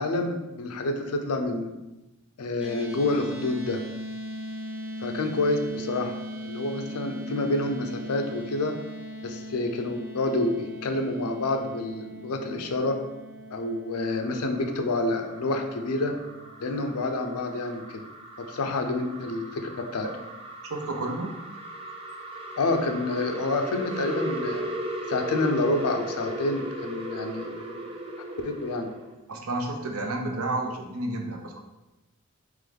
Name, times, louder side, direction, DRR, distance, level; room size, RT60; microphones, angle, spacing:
voice 1, 0.0-1.8 2.4-3.8 5.0-8.8 9.2-13.0 13.5-16.2 16.6-18.0 18.4-20.1 22.6-24.7 25.1-27.9 28.4-28.9, left 2 dB, 90° left, 5 dB, 0.5 m, -28 dB
sound 1, 2.6-17.0, equal, 5° right, 0.8 m, -39 dB
sound 2, 14.0-29.1, right 1 dB, 25° right, 0.4 m, -37 dB
voice 2, 20.7-21.3 29.3-31.7, right 2 dB, 80° right, 2 dB, 0.6 m, -31 dB
3.7 x 3.0 x 3.4 m, 1.0 s
head